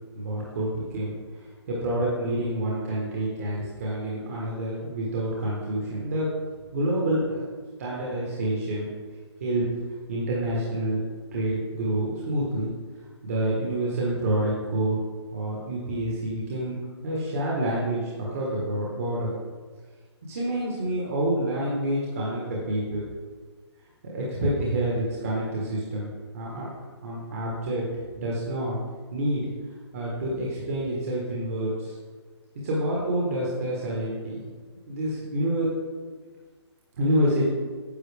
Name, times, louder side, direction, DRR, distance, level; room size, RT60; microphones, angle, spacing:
voice 1, 0.1-6.3 6.7-7.4 7.8-8.9 9.4-9.7 10.1-11.0 11.3-12.7 13.2-15.0 15.3-16.7 17.0-19.3 20.3-23.0 24.0-26.7 27.0-27.8 28.1-28.8 29.1-29.5 29.9-31.9 32.6-34.4 34.9-35.7 37.0-37.5, right 1 dB, 30° right, -5 dB, 1.4 m, -28 dB
10.0 x 7.5 x 3.4 m, 1.5 s
hypercardioid pair, 175°, 15 cm